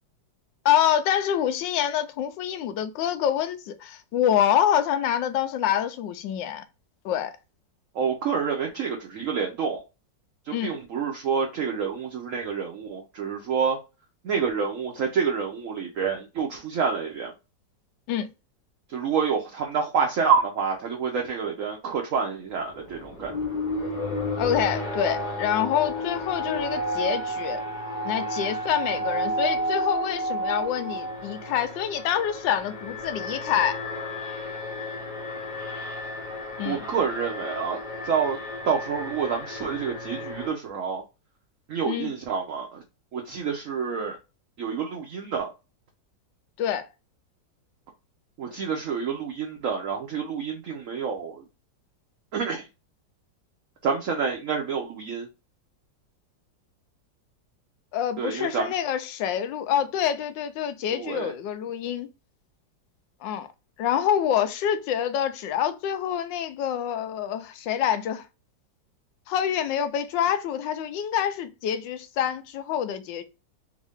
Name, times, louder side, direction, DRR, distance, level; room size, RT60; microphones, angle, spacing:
voice 1, 0.6-6.6 7.0-7.3 10.5-10.7 18.1-18.3 24.4-27.6 28.0-33.8 36.6-36.8 41.8-42.1 46.6-46.9 57.9-62.1 63.2-63.5 63.8-68.2 69.3-73.2, left 9 dB, 85° left, 1.3 m, -26 dB
voice 2, 7.9-9.8 10.5-13.8 14.2-17.3 18.9-23.3 36.6-37.8 38.0-38.4 38.7-41.0 41.7-42.8 43.1-44.2 44.6-45.5 48.4-51.4 52.3-52.7 53.8-55.3 58.2-58.7 60.9-61.3, right 6 dB, 60° right, 0.9 m, -28 dB
Alarm, 22.6-40.5, equal, 40° left, 0.7 m, -32 dB
3.6 x 2.6 x 3.4 m
omnidirectional pair, 2.0 m